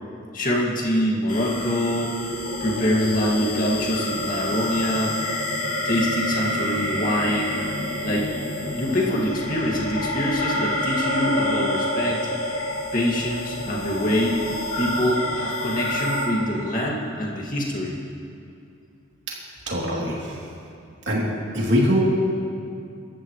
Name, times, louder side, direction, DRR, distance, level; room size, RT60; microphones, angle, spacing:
voice 1, 0.3-2.1 2.6-5.1 5.8-7.5 8.0-8.3 8.7-12.2 12.9-14.5 14.8-17.9, left 1 dB, 40° left, -3 dB, 2.2 m, -24 dB
sound 1, 1.3-16.3, left 1 dB, 80° left, 3.0 m, -28 dB
voice 2, 19.7-20.4 21.1-21.2 21.5-22.0, equal, 55° right, -4 dB, 3.1 m, -22 dB
25.5 x 14.0 x 3.3 m, 2.5 s
head